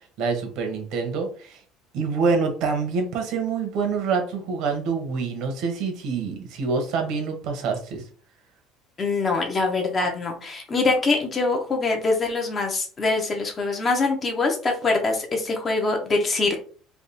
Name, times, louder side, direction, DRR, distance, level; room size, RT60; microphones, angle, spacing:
voice 1, 0.2-1.6 1.9-8.0, right 5 dB, 60° right, 4 dB, 1.1 m, -26 dB
voice 2, 9.0-16.6, left 3 dB, 25° left, 3 dB, 0.9 m, -24 dB
3.5 x 2.5 x 4.1 m, 0.41 s
cardioid pair, 155°, 0 cm